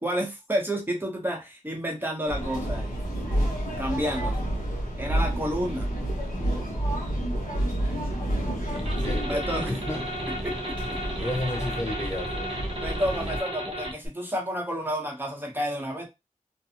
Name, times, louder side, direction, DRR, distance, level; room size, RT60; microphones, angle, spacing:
voice 1, 0.0-2.9 3.8-4.4 5.0-5.9 7.7-7.8 8.6-8.9 9.2-9.8 10.4-10.6 10.9-11.3 12.8-16.1, equal, 15° right, 0.9 m, -30 dB
sound 1, 2.3-13.4, right 1 dB, 85° left, 1.1 m, -30 dB
voice 2, 8.6-10.0 11.2-12.5, left 1 dB, 20° left, 0.4 m, -33 dB
sound 2, 8.7-14.1, right 1 dB, 45° right, 0.7 m, -34 dB
2.5 x 2.2 x 2.8 m
wide cardioid pair, 45°, 14 cm